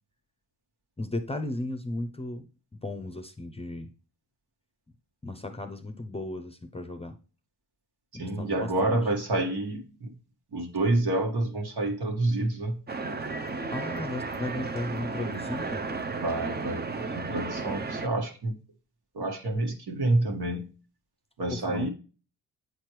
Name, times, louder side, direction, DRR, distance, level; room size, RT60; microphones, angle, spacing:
voice 1, 1.0-2.5 2.8-3.9 5.2-7.2 8.1-9.1 13.7-15.9 21.5-21.9, left 1 dB, 15° left, 0.7 m, -35 dB
voice 2, 8.1-10.1 10.5-12.8 16.2-18.5 19.1-20.7 21.4-21.9, right 2 dB, 60° right, 1.8 m, -28 dB
sound 1, 12.9-18.1, right 3 dB, 25° right, 0.7 m, -33 dB
8.1 x 4.4 x 3.1 m
cardioid pair, 70°, 42 cm